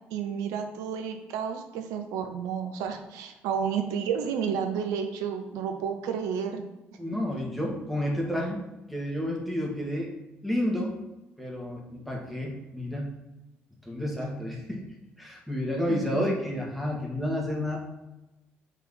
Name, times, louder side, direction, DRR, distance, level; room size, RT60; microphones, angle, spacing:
voice 1, 0.1-6.7 12.0-12.1 15.9-16.3, right 7 dB, 65° right, 6 dB, 0.5 m, -31 dB
voice 2, 6.9-8.6 8.9-10.1 10.4-11.0 11.4-13.1 13.8-14.8 15.2-17.8, left 1 dB, ahead, -3 dB, 1.4 m, -30 dB
3.7 x 3.5 x 4.0 m, 1.0 s
figure-of-eight pair, 45°, 6 cm